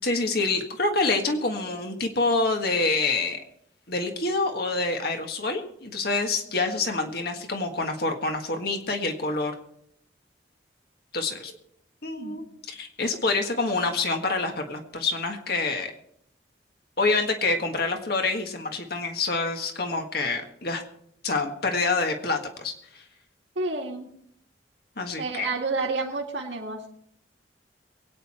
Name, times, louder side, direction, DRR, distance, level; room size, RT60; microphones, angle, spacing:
voice 1, 0.0-3.4 3.9-9.5 11.1-11.5 12.0-15.9 17.0-20.8 21.2-23.0 25.0-25.5, left 3 dB, 60° left, 4 dB, 1.7 m, -27 dB
voice 2, 23.6-24.1 25.2-26.9, right 3 dB, 90° right, -1 dB, 2.0 m, -30 dB
23.5 x 9.5 x 4.4 m, 0.69 s
head